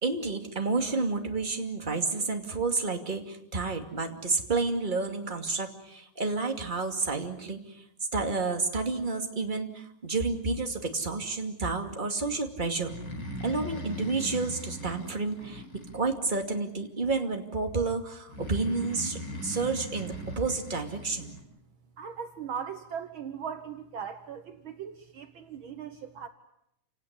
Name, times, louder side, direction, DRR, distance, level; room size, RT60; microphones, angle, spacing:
voice 1, 0.0-7.8 8.1-12.9 13.4-15.6 15.9-21.4, right 3 dB, 15° right, 4 dB, 2.1 m, -30 dB
Breathing, 12.8-16.5 18.3-21.4, equal, 30° left, 4.9 m, -40 dB
voice 2, 22.0-26.3, right 7 dB, 70° right, 8 dB, 1.2 m, -39 dB
29.0 x 18.5 x 9.6 m, 0.79 s
omnidirectional pair, 3.9 m